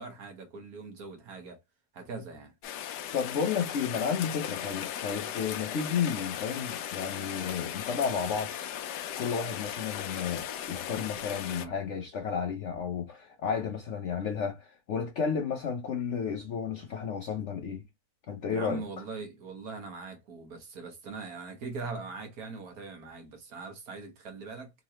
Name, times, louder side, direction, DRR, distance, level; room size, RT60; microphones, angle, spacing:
voice 1, 0.0-1.6 1.9-2.5 11.4-11.7 18.5-24.7, right 4 dB, 65° right, 1.6 m, -41 dB
Rain, 2.6-11.7, left 10 dB, 90° left, 1.2 m, -37 dB
voice 2, 3.1-8.5 9.2-17.8 18.3-18.8, left 6 dB, 65° left, 0.7 m, -32 dB
3.7 x 3.0 x 2.8 m
omnidirectional pair, 1.7 m